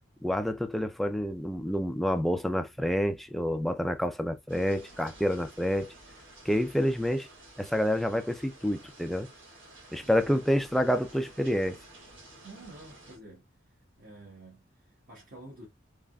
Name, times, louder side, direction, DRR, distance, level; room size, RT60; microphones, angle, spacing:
voice 1, 0.2-5.9 6.5-7.3 7.6-9.3 9.9-11.8, equal, ahead, 0.3 m, -28 dB
sound 1, 4.5-13.2, right 2 dB, 85° right, 1.7 m, -52 dB
voice 2, 10.0-10.5 12.1-13.5 14.0-15.7, right 2 dB, 50° right, 1.2 m, -50 dB
3.4 x 2.4 x 2.2 m
head